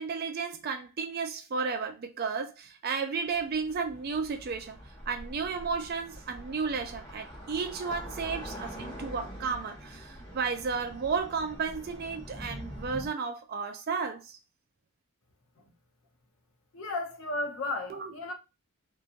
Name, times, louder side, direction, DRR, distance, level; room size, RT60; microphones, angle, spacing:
voice 1, 0.0-4.8 5.1-14.4 17.9-18.1, right 5 dB, 45° right, 0.4 m, -33 dB
sound 1, 3.2-13.1, equal, 10° left, 1.0 m, -44 dB
voice 2, 16.7-18.3, left 2 dB, 65° left, 0.7 m, -34 dB
2.8 x 2.2 x 2.4 m
head